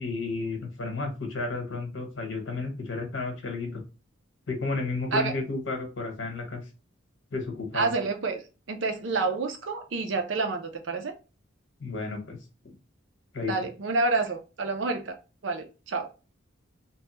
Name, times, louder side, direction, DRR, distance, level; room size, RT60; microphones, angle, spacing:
voice 1, 0.0-3.8 4.5-6.6 7.3-7.9 11.8-12.4 12.6-12.7 13.3-13.5, left 3 dB, 70° left, 3 dB, 1.1 m, -32 dB
voice 2, 7.7-8.4 8.7-11.1 13.4-15.2 15.4-16.1, right 3 dB, 65° right, 5 dB, 0.5 m, -28 dB
2.9 x 2.2 x 3.0 m, 0.31 s
head